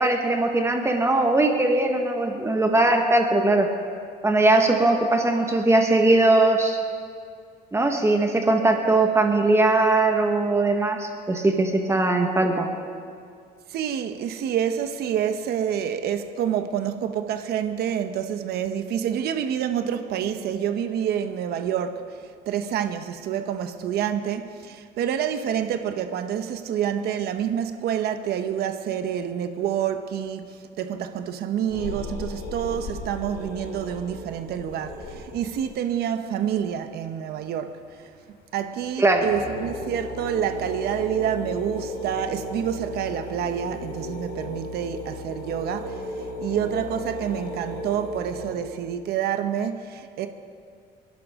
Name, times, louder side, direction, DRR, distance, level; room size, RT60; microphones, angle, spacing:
voice 1, 0.0-3.7 4.2-6.8 7.7-12.7 39.0-39.3, right 2 dB, 15° right, 1.4 m, -20 dB
voice 2, 13.7-22.1 22.5-37.8 38.5-46.0 46.4-50.3, right 9 dB, 70° right, 1.0 m, -28 dB
sound 1, 31.7-35.7 38.4-38.5 38.9-39.0 39.1-48.5, left 1 dB, 75° left, 4.7 m, -35 dB
27.5 x 11.5 x 3.7 m
cardioid pair, 110°, 17 cm